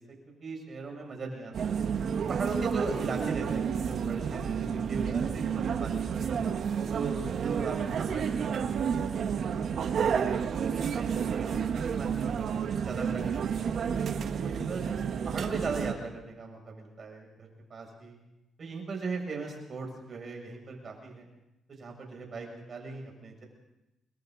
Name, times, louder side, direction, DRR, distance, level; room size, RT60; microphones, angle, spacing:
voice 1, 0.0-1.8 2.2-6.4 6.9-8.9 9.5-12.5 12.8-14.9 15.2-18.2 18.6-21.3 21.7-23.5, right 4 dB, 50° right, 1 dB, 7.9 m, -38 dB
sound 1, 1.5-15.9, right 7 dB, 65° right, 1.6 m, -30 dB
29.0 x 22.5 x 4.2 m, 0.95 s
cardioid pair, 80°, 0 cm